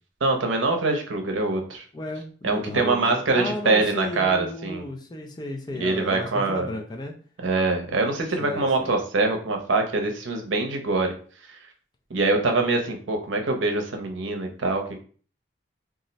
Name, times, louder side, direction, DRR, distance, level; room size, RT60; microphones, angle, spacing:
voice 1, 0.2-1.8 2.4-4.8 5.7-6.7 7.4-11.1 12.1-15.0, right 3 dB, 85° right, 4 dB, 0.6 m, -24 dB
voice 2, 1.9-7.1 8.4-9.0, left 2 dB, 20° left, 2 dB, 0.3 m, -34 dB
2.4 x 2.0 x 3.9 m, 0.43 s
head